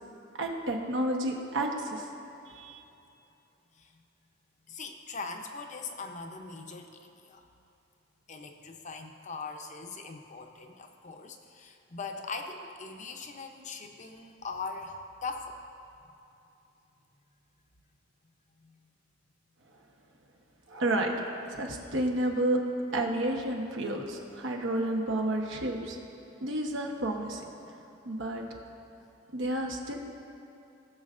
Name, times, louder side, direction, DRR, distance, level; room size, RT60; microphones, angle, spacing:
voice 1, 0.4-2.1 2.5-2.8 20.7-21.1 21.5-22.6 22.9-26.0 26.4-27.4 28.0-28.4 29.3-29.9, right 1 dB, 80° right, 1 dB, 1.1 m, -30 dB
voice 2, 4.7-7.4 8.3-15.6 18.6-18.8, left 4 dB, 40° left, 4 dB, 0.6 m, -41 dB
19.5 x 6.6 x 2.5 m, 2.8 s
head